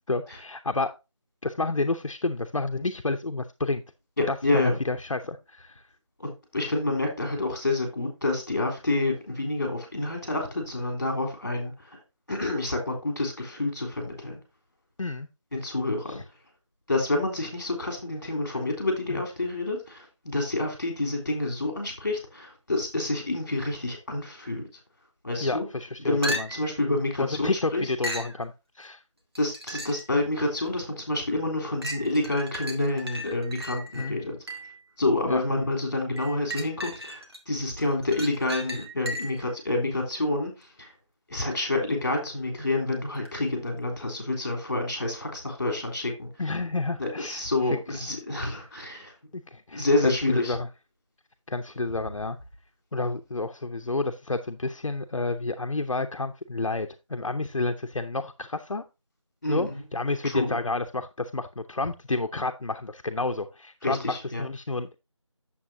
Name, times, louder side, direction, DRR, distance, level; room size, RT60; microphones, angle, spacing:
voice 1, 0.1-0.9 1.4-3.8 4.3-5.7 15.0-15.3 25.4-26.5 27.2-28.5 28.8-29.0 33.9-34.2 35.3-35.4 46.4-47.4 49.3-50.6 51.5-52.4 52.9-58.8 59.5-64.9, left 3 dB, 75° left, 6 dB, 0.8 m, -30 dB
voice 2, 4.2-4.8 6.2-11.9 12.3-14.4 15.5-16.2 16.9-24.6 25.2-25.6 26.0-27.9 29.4-34.4 35.0-40.9 41.3-46.3 47.0-49.1 49.7-50.5 59.4-59.8 60.2-60.6 63.8-64.4, left 2 dB, 35° left, 2 dB, 3.3 m, -28 dB
sound 1, 26.2-26.8 28.0-28.4 29.3-30.1 30.7-30.8 31.8-34.8 36.2-37.4 37.8-39.5 43.2-43.3, equal, 50° right, 1.6 m, -36 dB
8.6 x 7.2 x 2.7 m, 0.25 s
figure-of-eight pair, 180°, 17 cm